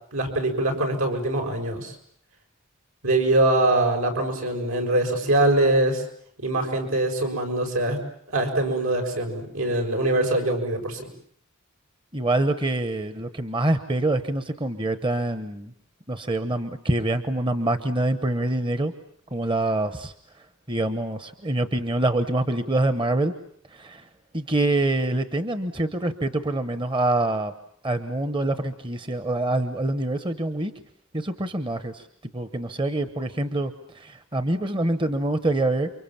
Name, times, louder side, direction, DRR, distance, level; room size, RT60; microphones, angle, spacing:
voice 1, 0.1-1.9 3.0-6.0 6.4-8.0 8.3-11.1, right 2 dB, 80° right, 3 dB, 6.2 m, -23 dB
voice 2, 12.1-15.7 16.1-18.9 19.3-20.1 20.7-23.3 23.7-24.0 24.3-27.5 27.8-30.7 31.1-32.1 32.3-35.9, right 2 dB, 25° right, 11 dB, 1.1 m, -25 dB
29.5 x 24.5 x 7.3 m, 0.64 s
head